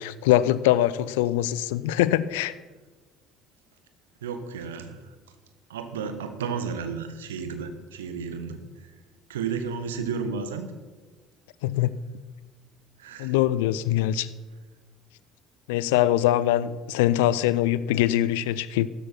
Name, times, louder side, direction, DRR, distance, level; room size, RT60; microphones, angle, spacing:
voice 1, 0.0-2.5 11.6-12.0 13.2-14.3 15.7-18.9, left 13 dB, 65° left, 0.5 m, -23 dB
voice 2, 4.2-5.0 5.7-8.6 9.3-10.7 13.0-13.3, right 6 dB, 75° right, 1.3 m, -32 dB
15.0 x 13.0 x 4.5 m
figure-of-eight pair, 60°, 0 cm